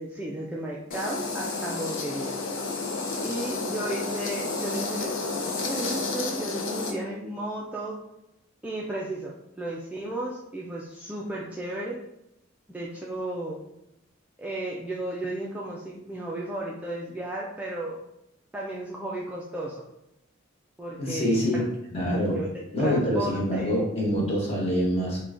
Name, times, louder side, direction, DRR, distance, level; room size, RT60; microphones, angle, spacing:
voice 1, 0.0-2.4 3.2-8.0 8.6-12.0 12.7-13.6 14.4-18.0 18.5-19.8 20.8-21.7 22.3-22.5 22.8-23.8, right 1 dB, 5° right, -4 dB, 0.3 m, -34 dB
sound 1, 0.9-6.9, left 3 dB, 75° left, 0.6 m, -31 dB
voice 2, 21.0-21.6 21.9-22.4 22.7-25.2, equal, 30° left, -4 dB, 1.2 m, -25 dB
3.5 x 2.2 x 3.7 m, 0.86 s
head